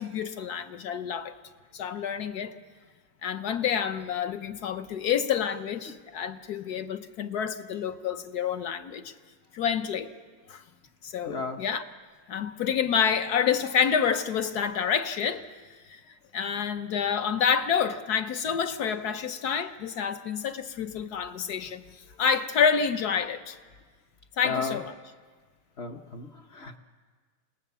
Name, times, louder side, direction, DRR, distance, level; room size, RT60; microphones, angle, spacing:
voice 1, 0.0-1.3 1.7-2.5 3.2-9.1 9.5-10.1 10.5-10.6 11.0-11.8 12.3-15.4 15.9-16.0 16.3-23.6 24.4-24.9, left 7 dB, 60° left, 1.4 m, -28 dB
voice 2, 11.3-11.6 24.4-24.8 25.8-26.8, left 4 dB, 45° left, 1.0 m, -34 dB
28.0 x 18.5 x 6.9 m
omnidirectional pair, 2.0 m